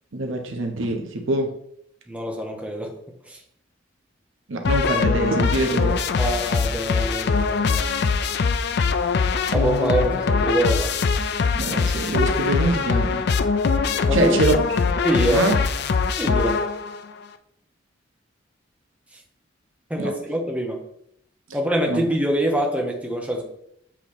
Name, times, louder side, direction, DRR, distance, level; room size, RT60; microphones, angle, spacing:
voice 1, 0.1-1.5 4.5-6.0 11.5-13.3 14.1-14.6 15.3-15.5 20.0-20.1 21.9-22.0, right 2 dB, 90° right, 4 dB, 0.9 m, -24 dB
voice 2, 2.1-2.9 3.3-3.4 6.2-7.9 9.5-10.9 14.1-14.4 15.0-15.5 16.2-16.6 19.9-20.8 21.5-23.4, right 1 dB, 5° right, 1 dB, 0.9 m, -24 dB
sound 1, 4.6-17.0, left 5 dB, 55° left, 0.4 m, -22 dB
7.4 x 3.0 x 4.2 m, 0.71 s
head